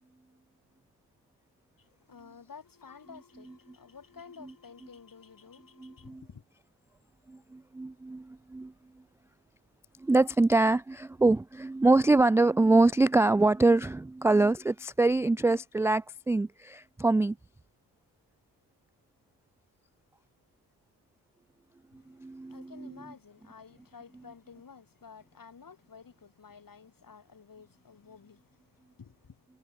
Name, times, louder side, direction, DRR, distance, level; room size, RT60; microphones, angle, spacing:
voice 1, 1.8-6.4 21.9-29.5, left 6 dB, 40° left, 4.2 m, -52 dB
voice 2, 5.8-6.2 7.3-8.7 10.0-17.4 22.1-22.9, right 2 dB, 5° right, 0.3 m, -24 dB
hypercardioid pair, 40°, 49 cm